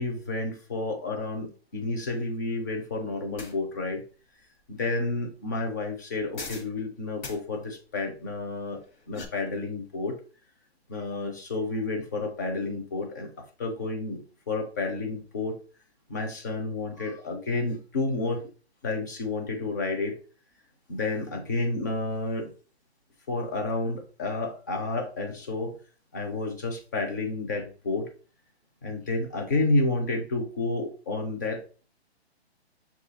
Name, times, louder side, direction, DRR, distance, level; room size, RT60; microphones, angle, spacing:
voice 1, 0.0-4.0 4.7-8.8 9.1-10.2 10.9-13.3 13.6-14.2 14.5-15.6 16.1-18.4 18.8-20.2 20.9-22.5 23.3-25.8 26.1-28.1 28.8-31.6, left 2 dB, 20° left, 2 dB, 0.4 m, -30 dB
sound 1, 3.4-3.5 6.3-6.7 7.2-7.4 8.8-9.3, left 4 dB, 45° left, 1.1 m, -39 dB
6.1 x 2.4 x 2.7 m, 0.37 s
hypercardioid pair, 145°, 33 cm